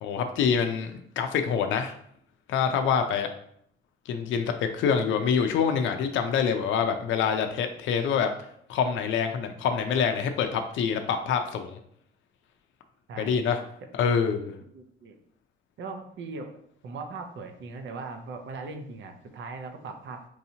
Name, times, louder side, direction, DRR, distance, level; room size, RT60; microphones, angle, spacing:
voice 1, 0.0-1.9 2.5-3.3 4.1-8.3 8.7-11.8 13.2-13.6 13.9-14.5, left 7 dB, 75° left, 6 dB, 0.5 m, -26 dB
voice 2, 13.1-13.6 14.7-15.2 15.8-16.5 16.8-20.3, right 4 dB, 70° right, 5 dB, 0.7 m, -39 dB
4.6 x 2.8 x 2.7 m, 0.67 s
cardioid pair, 90°, 20 cm